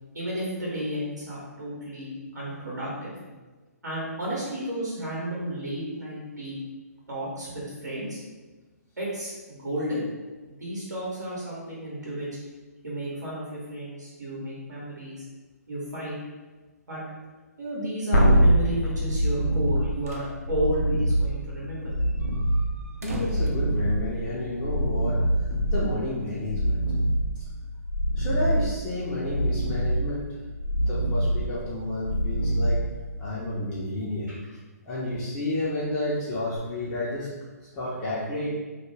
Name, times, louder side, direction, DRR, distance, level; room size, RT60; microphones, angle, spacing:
voice 1, 0.1-3.1 3.8-6.6 7.1-8.2 9.0-10.1 10.5-12.3 12.8-15.2 15.7-16.2 16.9-17.0 17.6-21.9, right 1 dB, 85° right, -6 dB, 0.9 m, -32 dB
sound 1, 18.1-33.4 36.6-36.7, right 1 dB, 70° left, 0.5 m, -25 dB
sound 2, 19.7-20.3 20.6-20.7 21.0-21.1 21.5-24.5, right 1 dB, 60° right, 0.5 m, -39 dB
voice 2, 23.0-25.2 25.7-26.8 28.2-30.3 30.7-32.8 33.2-34.3 34.9-37.3 37.7-38.5, left 1 dB, 25° left, -8 dB, 0.5 m, -31 dB
2.3 x 2.1 x 3.1 m, 1.3 s
hypercardioid pair, 135°, 9 cm